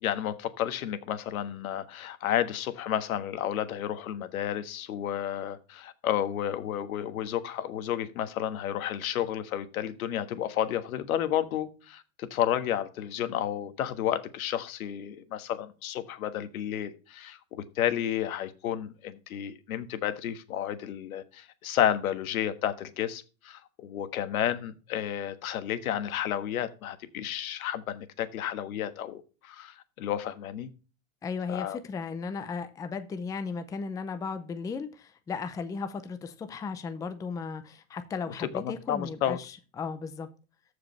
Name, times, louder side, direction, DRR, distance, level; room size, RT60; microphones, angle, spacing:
voice 1, 0.0-30.7 31.5-31.8 38.4-39.4, left 10 dB, 90° left, 1.5 m, -31 dB
voice 2, 31.2-40.3, left 5 dB, 10° left, 0.5 m, -36 dB
14.5 x 5.1 x 3.2 m
supercardioid pair, 145°, 41 cm